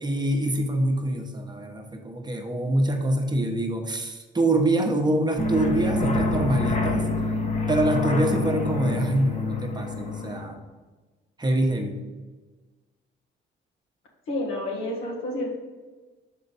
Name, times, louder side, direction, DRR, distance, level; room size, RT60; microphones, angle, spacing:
voice 1, 0.0-7.1 7.7-10.6 11.4-12.0, right 1 dB, 20° right, 3 dB, 1.0 m, -25 dB
sound 1, 5.4-10.4, left 2 dB, 35° left, 1.0 m, -26 dB
voice 2, 14.3-15.5, left 1 dB, 90° left, -2 dB, 1.7 m, -29 dB
6.3 x 4.6 x 4.1 m, 1.3 s
cardioid pair, 90°, 20 cm